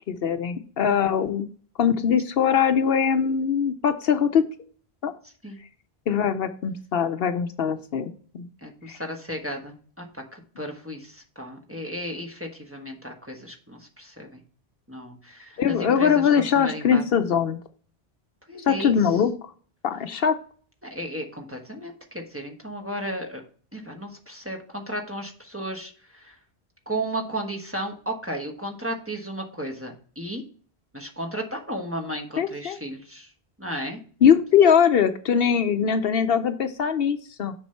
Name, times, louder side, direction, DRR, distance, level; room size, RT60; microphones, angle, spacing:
voice 1, 0.1-1.5 1.8-4.4 5.0-5.1 6.1-8.5 8.9-9.0 15.6-17.6 18.7-19.3 19.8-20.4 32.4-32.8 34.2-37.5, left 7 dB, 70° left, 9 dB, 0.8 m, -21 dB
voice 2, 8.6-14.4 14.9-16.3 16.5-17.0 18.5-19.0 20.8-23.4 23.7-26.3 26.9-30.4 30.9-33.3 33.6-34.0, right 1 dB, 15° right, 1 dB, 1.2 m, -34 dB
7.0 x 5.4 x 4.4 m, 0.44 s
omnidirectional pair, 1.1 m